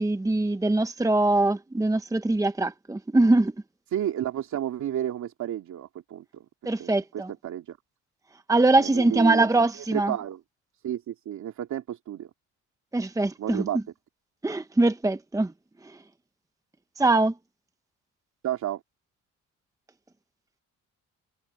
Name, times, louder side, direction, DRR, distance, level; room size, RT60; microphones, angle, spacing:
voice 1, 0.0-3.5 6.7-7.3 8.5-10.1 12.9-13.6 14.4-15.5 17.0-17.3, right 2 dB, 10° right, 1.0 m, -22 dB
voice 2, 3.9-6.4 6.8-7.8 8.8-9.5 9.9-10.4 10.8-12.3 13.4-13.8 18.4-18.8, right 11 dB, 70° right, 2.7 m, -31 dB
cardioid pair, 90°, 30 cm